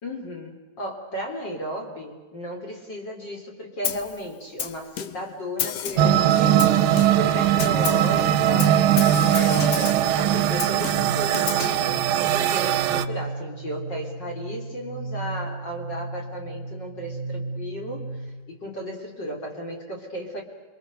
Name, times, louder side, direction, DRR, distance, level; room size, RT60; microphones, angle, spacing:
voice 1, 0.0-6.6 7.0-8.8 9.3-11.9 12.2-18.1 18.5-20.4, equal, 30° left, 2 dB, 3.7 m, -34 dB
Snare drum, 3.8-4.2 4.6-5.3 5.6-6.2 6.6-7.3 7.6-8.1 8.6-10.1 10.6-11.8, left 10 dB, 70° left, 1.7 m, -32 dB
sound 1, 6.0-13.1, right 11 dB, 75° right, 2.3 m, -20 dB
sound 2, 11.0-18.5, right 3 dB, 15° right, 4.8 m, -35 dB
27.5 x 24.0 x 6.6 m, 1.4 s
omnidirectional pair, 4.6 m